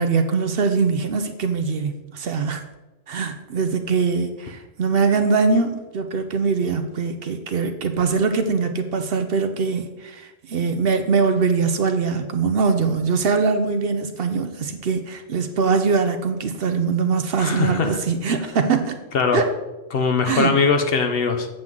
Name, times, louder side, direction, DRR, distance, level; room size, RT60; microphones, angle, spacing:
voice 1, 0.0-2.6 3.1-19.0 19.3-19.5 20.2-20.6, right 5 dB, 60° right, 7 dB, 0.8 m, -22 dB
voice 2, 17.4-18.0 19.1-19.4 19.9-21.5, left 5 dB, 55° left, 6 dB, 0.9 m, -21 dB
7.6 x 7.6 x 3.7 m, 1.1 s
omnidirectional pair, 1.2 m